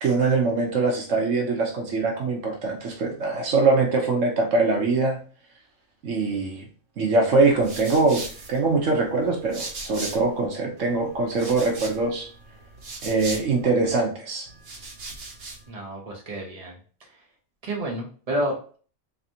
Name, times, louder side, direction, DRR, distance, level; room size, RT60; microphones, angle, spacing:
voice 1, 0.0-5.2 6.0-6.7 7.0-12.3 13.0-14.5, right 3 dB, 75° right, 1 dB, 1.3 m, -23 dB
sound 1, 7.3-10.5 10.8-13.9 14.5-15.7, right 3 dB, 55° right, 1.1 m, -39 dB
voice 2, 15.7-16.8 17.6-18.8, right 1 dB, 30° right, -1 dB, 1.2 m, -30 dB
4.0 x 3.3 x 2.8 m, 0.41 s
omnidirectional pair, 1.3 m